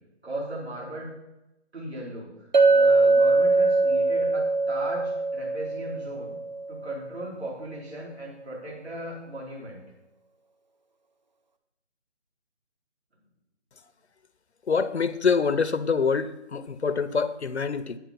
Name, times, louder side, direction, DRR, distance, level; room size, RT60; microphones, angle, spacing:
voice 1, 0.2-1.1 1.7-6.3 6.7-9.8, right 1 dB, 60° right, 4.7 m, -37 dB
Chink clink, 2.5-7.0, right 3 dB, 40° right, 0.7 m, -22 dB
voice 2, 14.7-18.0, left 5 dB, 65° left, 0.7 m, -25 dB
9.2 x 8.6 x 5.3 m
figure-of-eight pair, 160°, 35 cm